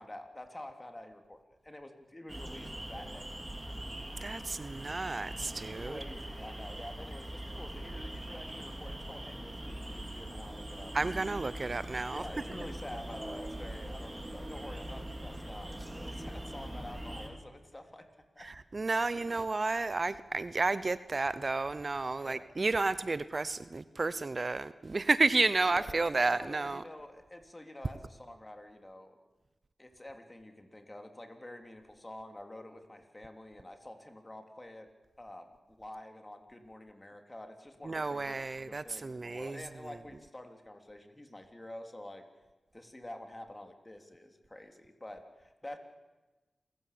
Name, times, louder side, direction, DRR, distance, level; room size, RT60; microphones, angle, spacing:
voice 1, 0.0-3.3 3.7-3.9 5.7-11.0 12.1-18.1 18.4-18.5 19.0-19.1 22.2-22.5 25.7-26.0 26.3-29.2 29.8-34.9 35.2-42.3 42.7-45.8, left 1 dB, 25° left, 5 dB, 3.5 m, -48 dB
sound 1, 2.3-17.3, right 1 dB, 20° right, 4.4 m, -42 dB
voice 2, 4.2-6.0 10.9-12.2 18.4-26.8 37.8-39.6, right 3 dB, 50° right, 15 dB, 0.8 m, -31 dB
28.0 x 16.0 x 8.7 m, 1.2 s
cardioid pair, 45°, 0 cm